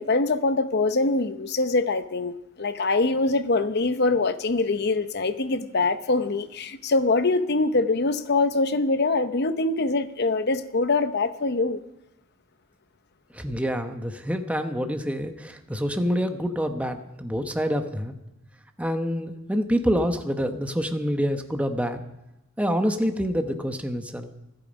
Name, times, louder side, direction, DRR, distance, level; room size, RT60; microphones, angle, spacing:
voice 1, 0.0-11.8, left 3 dB, 50° left, 0.8 m, -24 dB
voice 2, 13.3-18.2 18.8-22.0 22.6-24.3, equal, 5° right, 1.0 m, -27 dB
25.5 x 8.9 x 5.2 m
head